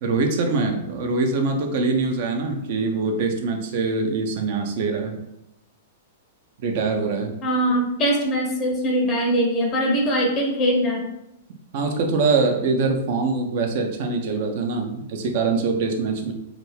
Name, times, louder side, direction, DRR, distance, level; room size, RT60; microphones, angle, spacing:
voice 1, 0.0-5.2 6.6-7.3 11.7-16.3, right 4 dB, 50° right, 3 dB, 0.5 m, -23 dB
voice 2, 7.4-11.1, equal, 30° left, 0 dB, 0.6 m, -22 dB
2.4 x 2.3 x 3.2 m, 0.86 s
figure-of-eight pair, 105°, 0 cm